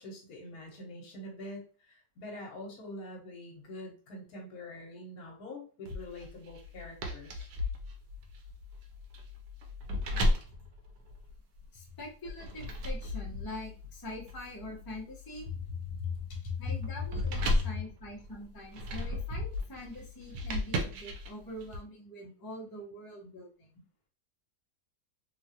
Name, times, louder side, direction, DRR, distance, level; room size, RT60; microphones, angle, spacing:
voice 1, 0.0-7.5 15.5-16.9 17.5-17.7, left 4 dB, 65° left, -1 dB, 1.4 m, -41 dB
sound 1, 5.9-11.7 12.3-21.8, left 1 dB, 70° right, 1.1 m, -35 dB
voice 2, 11.7-15.5 16.6-23.7, left 1 dB, 20° left, -4 dB, 0.7 m, -44 dB
3.0 x 2.4 x 2.8 m, 0.38 s
omnidirectional pair, 1.7 m